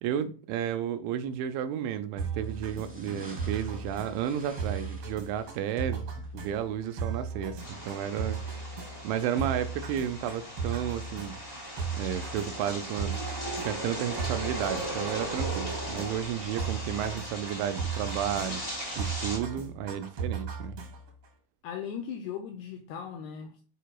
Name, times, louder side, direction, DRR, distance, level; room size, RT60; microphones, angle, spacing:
voice 1, 0.0-6.0 6.3-8.4 9.0-11.4 11.9-13.2 13.6-18.6 19.0-20.8, right 9 dB, 80° right, 2.8 m, -32 dB
sound 1, 2.2-21.3, right 5 dB, 60° right, 1.6 m, -37 dB
sound 2, 2.4-8.4, equal, 5° right, 0.7 m, -50 dB
sound 3, 7.6-19.4, right 1 dB, 60° left, 0.3 m, -38 dB
voice 2, 21.6-23.6, left 8 dB, 85° left, 2.3 m, -38 dB
10.0 x 5.0 x 2.3 m
omnidirectional pair, 5.6 m